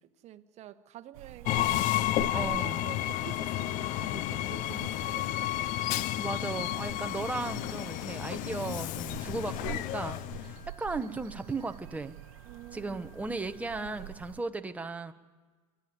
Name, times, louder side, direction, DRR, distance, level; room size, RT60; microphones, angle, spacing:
voice 1, 0.2-1.8 2.3-6.2 12.4-13.0 13.7-14.1, right 12 dB, 40° right, 9 dB, 1.2 m, -48 dB
sound 1, 1.1-14.4, right 16 dB, 75° right, 0.8 m, -47 dB
Train, 1.5-10.6, left 15 dB, 45° left, 0.6 m, -31 dB
voice 2, 2.3-2.9 6.2-12.2 12.7-15.1, right 3 dB, 10° right, 7 dB, 1.0 m, -36 dB
Wind instrument woodwind instrument, 9.0-14.2, left 6 dB, 70° left, 3.8 m, -61 dB
26.0 x 11.0 x 9.5 m, 1.4 s
supercardioid pair, 125°, 18 cm